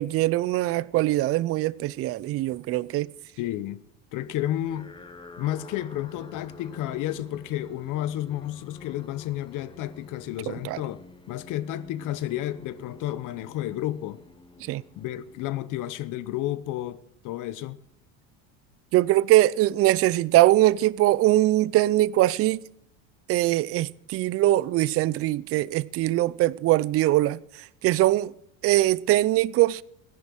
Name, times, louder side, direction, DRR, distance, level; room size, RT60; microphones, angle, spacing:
voice 1, 0.0-3.1 10.5-10.8 14.7-14.8 18.9-22.6 23.3-27.4 27.8-28.3 28.6-29.8, right 16 dB, 40° right, 0.4 m, -22 dB
voice 2, 3.4-3.8 4.1-4.9 5.4-11.0 11.3-14.2 15.0-17.8, left 13 dB, 50° left, 0.9 m, -31 dB
sound 1, 4.6-16.1, left 3 dB, 15° left, 1.1 m, -49 dB
15.0 x 10.5 x 6.2 m
supercardioid pair, 115°, 39 cm